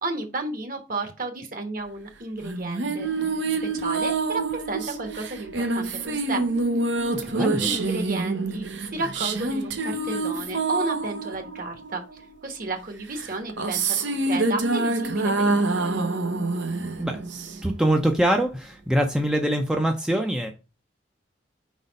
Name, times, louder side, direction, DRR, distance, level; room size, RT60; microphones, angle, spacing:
voice 1, 0.0-3.1 3.6-6.4 7.4-12.0 12.4-16.1, right 2 dB, 45° right, 1.2 m, -33 dB
sound 1, 2.4-12.3 13.2-17.8, right 3 dB, 75° right, 0.8 m, -26 dB
voice 2, 7.0-7.7 17.0-17.2 17.6-20.5, right 1 dB, 5° right, 0.5 m, -24 dB
5.0 x 4.1 x 5.1 m
head